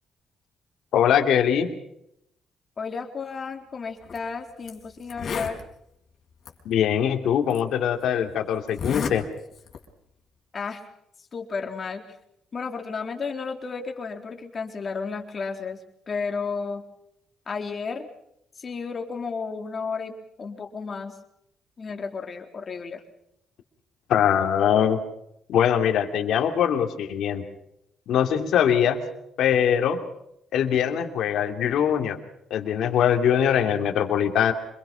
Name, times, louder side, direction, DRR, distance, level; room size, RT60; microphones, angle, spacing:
voice 1, 0.9-1.7 6.6-9.2 24.1-25.0 25.5-27.4 28.1-29.0 29.4-30.0 30.5-32.2 32.5-34.5, left 9 dB, 75° left, 5 dB, 2.9 m, -22 dB
voice 2, 2.8-5.6 10.5-10.8 11.3-12.1 12.5-15.8 16.1-16.8 17.5-18.1 18.6-21.2 21.8-23.0, left 5 dB, 40° left, 4 dB, 3.8 m, -32 dB
Zipper (clothing), 4.0-4.2 4.7-4.8 5.0-5.6 6.4-6.5 7.5-7.6 8.7-9.2 9.5-9.8, left 7 dB, 55° left, 4.8 m, -31 dB
26.5 x 22.0 x 5.9 m, 0.78 s
cardioid pair, 90°, 0 cm